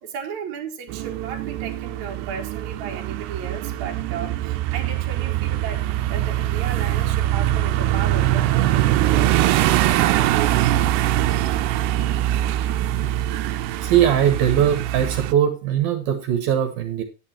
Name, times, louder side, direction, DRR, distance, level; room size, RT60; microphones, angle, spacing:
voice 1, 0.0-5.8 6.1-11.0, right 7 dB, 55° right, 2.6 m, -35 dB
sound 1, 0.9-15.3, right 13 dB, 85° right, 2.8 m, -22 dB
voice 2, 13.8-17.0, right 10 dB, 70° right, 2.9 m, -20 dB
11.0 x 8.5 x 4.3 m
omnidirectional pair, 4.7 m